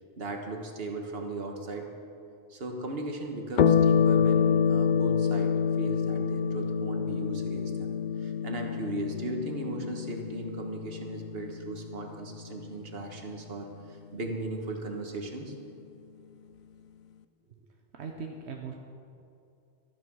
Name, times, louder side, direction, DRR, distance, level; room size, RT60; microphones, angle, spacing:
voice 1, 0.2-1.9 2.5-7.9 8.2-13.7 14.1-15.5, right 2 dB, 65° right, 3 dB, 1.7 m, -37 dB
sound 1, 3.6-12.4, left 7 dB, 55° left, 0.6 m, -27 dB
voice 2, 17.9-18.7, right 5 dB, 85° right, 2 dB, 1.2 m, -39 dB
13.0 x 11.0 x 6.2 m, 2.6 s
omnidirectional pair, 1.1 m